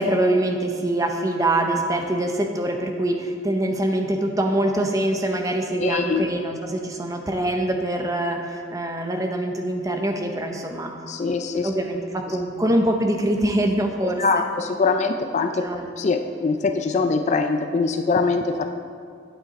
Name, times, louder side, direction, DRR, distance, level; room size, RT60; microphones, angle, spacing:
voice 1, 0.0-10.9 11.6-14.2 15.6-15.9, right 1 dB, 15° right, 3 dB, 0.7 m, -24 dB
voice 2, 5.8-6.2 11.1-11.7 14.0-18.7, left 4 dB, 35° left, 7 dB, 0.3 m, -23 dB
9.0 x 8.1 x 4.2 m, 2.2 s
head